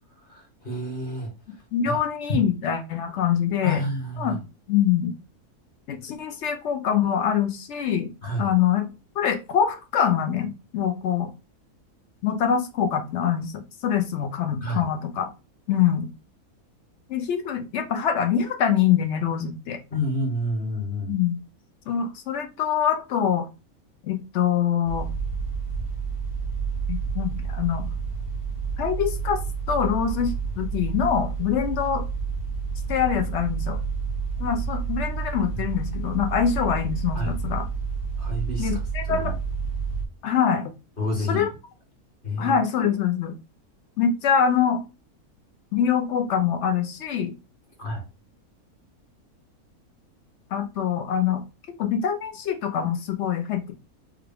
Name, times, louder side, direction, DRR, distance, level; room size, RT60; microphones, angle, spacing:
voice 1, 0.3-1.3 1.8-2.0 2.3-2.4 3.6-4.4 8.2-8.5 14.6-14.8 19.9-21.1 37.1-37.3 38.2-39.3 41.0-41.4 42.2-42.6 47.8-48.0, left 1 dB, 40° left, 1 dB, 1.2 m, -29 dB
voice 2, 1.7-3.8 4.2-4.4 4.7-5.1 5.9-8.1 8.4-8.9 9.2-11.3 12.2-13.5 13.8-15.3 15.7-16.1 17.1-19.8 21.1-21.4 21.9-23.5 24.1-25.1 26.9-27.8 28.8-29.4 29.7-32.0 32.9-33.8 34.4-37.6 38.6-39.3 40.2-40.6 41.3-41.5 42.4-43.3 44.0-44.8 45.7-47.3 50.5-51.4 51.8-53.7, left 8 dB, 65° left, 7 dB, 0.7 m, -24 dB
sound 1, 24.9-40.1, right 5 dB, 85° left, 1.3 m, -29 dB
3.8 x 2.2 x 3.3 m, 0.29 s
omnidirectional pair, 1.6 m